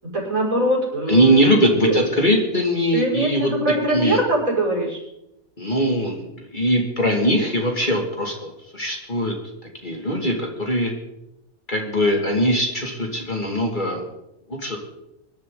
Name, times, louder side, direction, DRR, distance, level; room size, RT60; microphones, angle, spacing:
voice 1, 0.0-2.0 2.9-5.0, right 1 dB, 60° right, -3 dB, 6.5 m, -22 dB
voice 2, 1.1-3.5 3.9-4.2 5.6-9.3 9.8-10.9 11.7-14.0 14.5-14.8, equal, 30° left, 0 dB, 2.6 m, -21 dB
24.5 x 12.0 x 4.0 m, 0.87 s
omnidirectional pair, 1.6 m